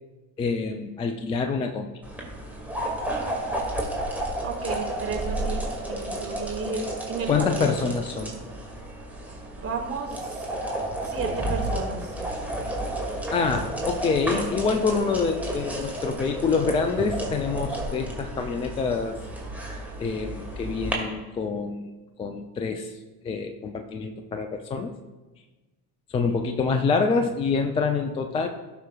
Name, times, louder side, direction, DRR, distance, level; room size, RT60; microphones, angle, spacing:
voice 1, 0.4-1.9 7.3-8.3 13.3-19.2 20.0-21.9 22.2-23.0 23.2-24.9 26.1-28.5, left 5 dB, 15° left, 6 dB, 0.3 m, -26 dB
sound 1, 2.0-20.9, right 1 dB, 5° right, 2.1 m, -32 dB
voice 2, 4.4-5.6 5.9-7.3 7.6-7.7 9.5-10.5 11.0-12.2, right 5 dB, 25° right, 1 dB, 2.2 m, -33 dB
16.5 x 6.0 x 2.3 m, 1.2 s
figure-of-eight pair, 60°, 50 cm